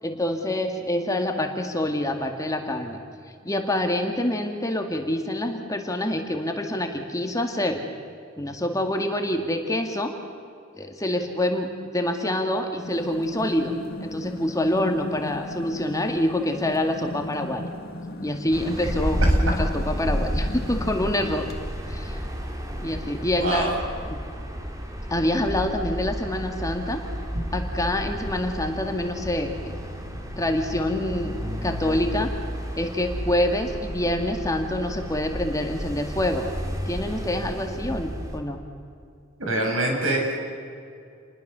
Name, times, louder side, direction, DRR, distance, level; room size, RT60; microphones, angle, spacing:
voice 1, 0.0-3.0 3.4-7.8 8.4-10.1 10.7-13.7 14.0-17.6 18.2-21.5 21.9-22.2 22.8-23.7 24.1-24.2 25.1-27.0 27.5-29.7 30.4-32.3 32.8-36.5 36.9-38.6, left 1 dB, 15° left, 4 dB, 2.0 m, -26 dB
Refrigerator Running, 12.8-22.0, left 1 dB, 50° left, 1.9 m, -37 dB
sound 1, 18.5-38.4, equal, 15° right, 2.6 m, -31 dB
voice 2, 23.4-23.7 39.4-40.3, right 1 dB, 75° right, 1 dB, 6.7 m, -24 dB
28.5 x 21.5 x 6.9 m, 2.4 s
head